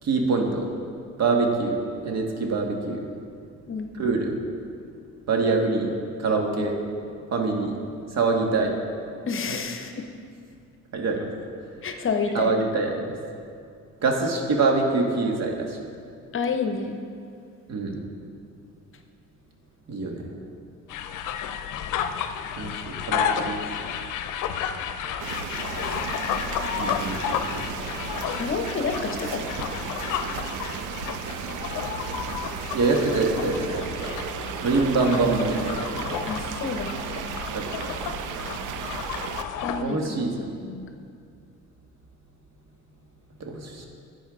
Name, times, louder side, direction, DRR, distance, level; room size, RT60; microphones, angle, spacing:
voice 1, 0.0-0.7 1.2-3.1 4.0-4.3 5.3-5.9 6.2-6.7 7.3-7.8 8.1-8.8 10.9-11.3 12.3-13.1 14.0-15.8 17.7-18.0 19.9-20.3 22.6-23.6 26.8-27.7 32.7-34.1 34.6-36.2 37.5-37.9 39.8-40.5 43.4-43.9, right 3 dB, 60° right, 2 dB, 1.5 m, -25 dB
voice 2, 9.3-10.1 11.8-12.6 16.3-17.0 23.4-23.5 28.3-29.7 36.3-37.2 39.6-40.9, left 5 dB, 45° left, 6 dB, 0.8 m, -29 dB
sound 1, 20.9-39.8, left 8 dB, 85° left, 0.6 m, -32 dB
sound 2, 25.2-39.4, right 9 dB, 90° right, 0.5 m, -34 dB
11.5 x 8.5 x 3.6 m, 2.4 s
cardioid pair, 90°, 30 cm